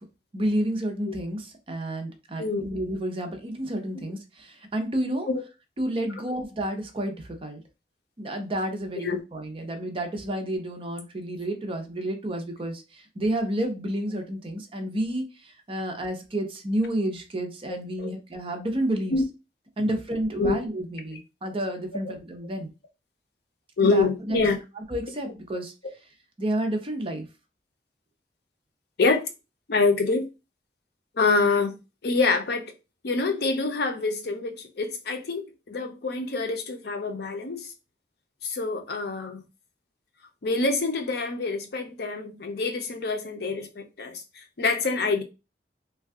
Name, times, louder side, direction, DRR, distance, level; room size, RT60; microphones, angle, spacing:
voice 1, 0.3-5.3 5.8-7.6 8.2-19.1 19.8-22.7 23.8-24.5 24.8-25.7 26.4-27.3, right 1 dB, 30° right, 0.6 m, -30 dB
voice 2, 2.4-2.7 5.3-5.4 9.0-9.2 17.7-18.1 19.1-19.2 20.4-20.6 23.8-24.6 29.0-29.2 29.7-30.3 31.2-31.7 32.0-32.6 33.0-37.7 38.4-39.4 40.4-45.2, left 3 dB, 65° left, 0.6 m, -26 dB
2.6 x 2.3 x 3.5 m
head